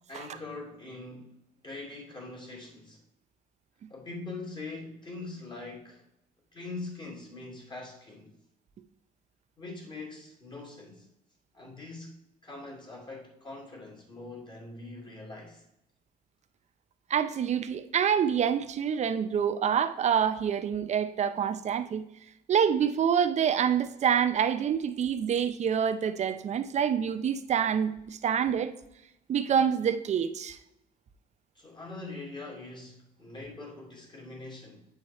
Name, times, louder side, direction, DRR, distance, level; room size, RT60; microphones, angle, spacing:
voice 1, 0.1-1.3 1.6-3.0 3.9-6.0 6.5-8.3 9.6-11.1 11.5-15.6 31.5-34.9, left 3 dB, 25° left, 2.6 m, -43 dB
voice 2, 17.1-22.0 22.5-28.7 29.3-30.6, right 8 dB, 40° right, 0.6 m, -26 dB
8.4 x 4.9 x 4.2 m
cardioid pair, 110°, 17 cm